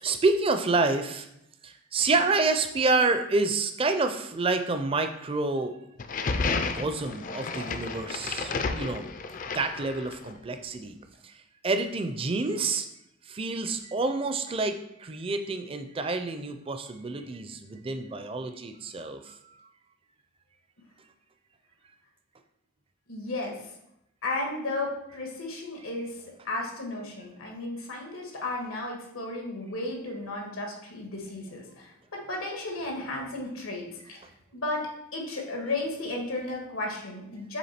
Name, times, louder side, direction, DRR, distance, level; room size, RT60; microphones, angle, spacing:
voice 1, 0.0-1.3 1.6-5.7 6.7-9.1 9.5-11.0 11.2-11.3 11.6-12.9 13.3-14.7 15.0-19.3, right 3 dB, 25° right, 7 dB, 0.4 m, -28 dB
sound 1, 6.0-10.3, left 4 dB, 40° left, 0.4 m, -32 dB
voice 2, 23.1-23.5 24.2-26.2 26.4-34.2 34.5-34.8 35.1-37.6, left 2 dB, 90° left, 0 dB, 1.5 m, -34 dB
7.2 x 3.4 x 4.3 m, 0.81 s
head